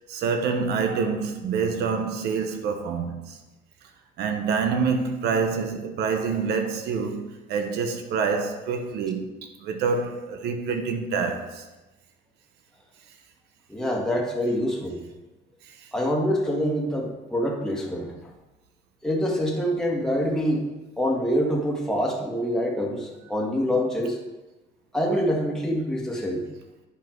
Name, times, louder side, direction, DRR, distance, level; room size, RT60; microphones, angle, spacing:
voice 1, 0.1-3.4 4.2-11.7 15.7-15.8, right 5 dB, 80° right, 1.1 m, -27 dB
voice 2, 13.7-15.0 15.9-18.3 19.0-20.7 21.0-24.2 24.9-26.5, equal, 5° left, 1.8 m, -25 dB
10.0 x 5.6 x 4.6 m
cardioid pair, 110°, 17 cm